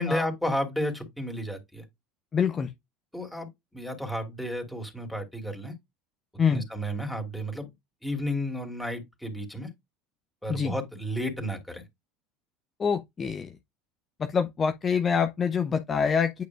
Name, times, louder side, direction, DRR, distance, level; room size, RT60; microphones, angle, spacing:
voice 1, 0.0-1.8 3.1-3.5 3.7-5.7 6.5-7.7 8.0-9.7 10.4-11.8, equal, ahead, 2.9 m, -32 dB
voice 2, 2.3-2.7 6.4-6.6 10.5-10.7 12.8-13.5 14.2-16.4, left 6 dB, 30° left, 0.8 m, -26 dB
9.0 x 5.0 x 2.4 m
figure-of-eight pair, 70°, 0 cm